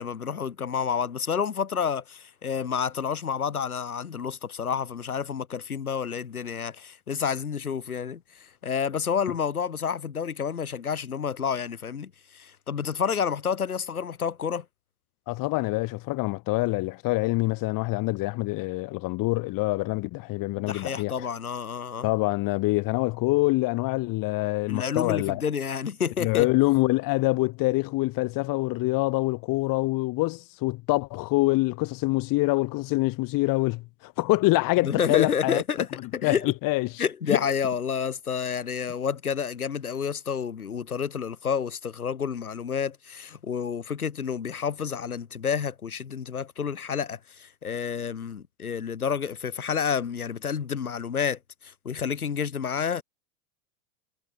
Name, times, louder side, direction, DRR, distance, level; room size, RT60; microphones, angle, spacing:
voice 1, 0.0-14.7 20.7-22.1 24.7-26.5 34.8-36.5 37.0-53.0, left 7 dB, 90° left, 7.3 m, -29 dB
voice 2, 15.3-21.1 22.0-25.4 26.2-35.6 36.2-36.9 37.3-37.4, left 22 dB, 50° left, 6.6 m, -25 dB
hypercardioid pair, 90°, 42 cm